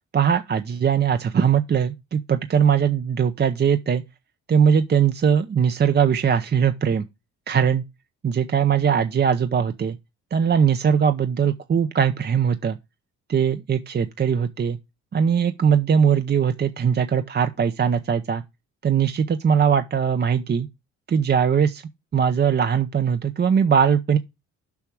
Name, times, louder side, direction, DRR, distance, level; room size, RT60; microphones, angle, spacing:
voice 1, 0.1-4.0 4.5-7.1 7.5-7.8 8.2-10.0 10.3-12.8 13.3-14.8 15.1-18.4 18.8-20.7 21.1-21.8 22.1-24.2, right 7 dB, 35° right, 0.7 m, -20 dB
7.0 x 5.8 x 4.7 m
cardioid pair, 90°, 30 cm